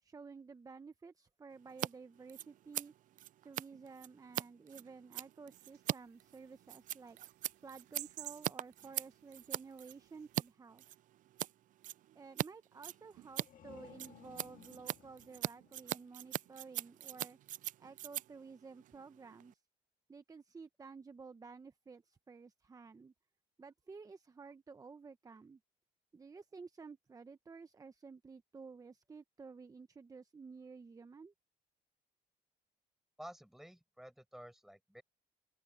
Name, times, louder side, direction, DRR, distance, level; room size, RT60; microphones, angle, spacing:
voice 1, 0.0-2.9 3.4-7.2 7.6-10.8 12.1-17.4 17.8-19.6 20.1-23.1 23.6-25.6 26.1-31.3, right 4 dB, 20° right, 0.8 m, -53 dB
Scissors, 1.7-1.9 2.2-10.5 10.8-11.5 11.8-12.5 12.7-19.5, right 13 dB, 50° right, 0.4 m, -41 dB
sound 1, 5.6-10.5, right 14 dB, 80° right, 2.6 m, -55 dB
sound 2, 13.2-16.8, left 10 dB, 55° left, 2.2 m, -59 dB
voice 2, 33.2-35.0, equal, ahead, 6.2 m, -52 dB
open air
cardioid pair, 110°, 17 cm